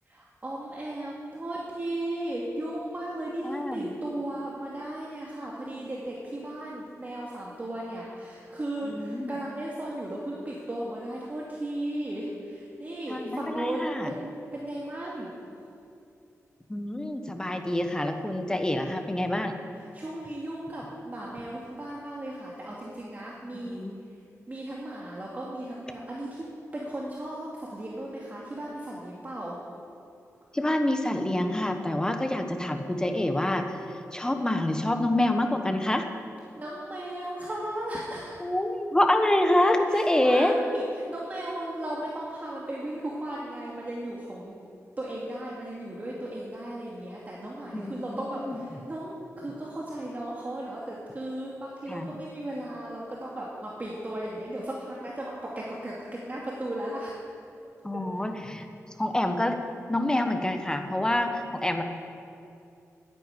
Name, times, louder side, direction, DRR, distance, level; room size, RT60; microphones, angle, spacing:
voice 1, 0.1-15.3 19.9-23.8 24.5-26.4 26.7-29.6 36.6-38.3 39.9-44.6 45.0-56.0 56.3-57.1 58.1-58.3, right 1 dB, 30° right, -5 dB, 2.4 m, -36 dB
voice 2, 3.4-3.8 8.8-9.3 13.1-14.1 16.7-19.5 23.7-23.9 30.5-33.7 34.1-36.1 38.4-40.5 47.7-48.1 48.4-48.6 51.9-52.1 57.8-58.7 59.0-59.6 59.9-61.8, left 1 dB, 15° left, 5 dB, 1.3 m, -26 dB
11.5 x 10.5 x 9.4 m, 2.6 s
cardioid pair, 85°, 6 cm